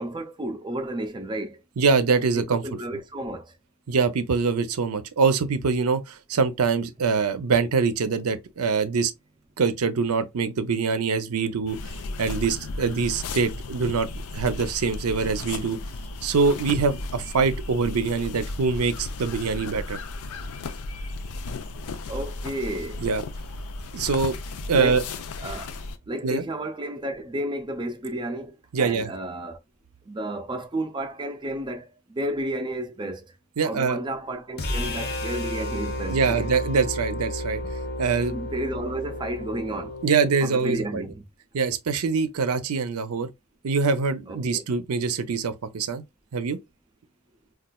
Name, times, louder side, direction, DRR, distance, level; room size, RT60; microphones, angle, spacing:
voice 1, 0.0-1.6 2.3-3.5 22.1-23.0 24.7-25.0 25.4-25.7 26.1-29.6 30.1-33.4 33.6-36.5 38.3-40.0 40.4-41.2 44.3-44.6, right 1 dB, 20° right, 0.4 m, -32 dB
voice 2, 1.8-2.6 3.9-9.1 9.6-11.8 12.2-14.1 14.3-15.8 16.2-20.0 23.0-23.2 23.9-24.4 24.7-25.0 26.2-26.4 28.7-29.1 33.6-34.0 36.1-37.6 38.0-38.3 40.0-41.0 41.5-43.3 43.6-46.0 46.3-46.6, right 5 dB, 85° right, 0.5 m, -24 dB
sound 1, 11.7-26.0, left 3 dB, 90° left, 0.5 m, -35 dB
sound 2, 34.6-40.7, left 1 dB, 45° left, 0.7 m, -32 dB
4.1 x 2.4 x 2.2 m
head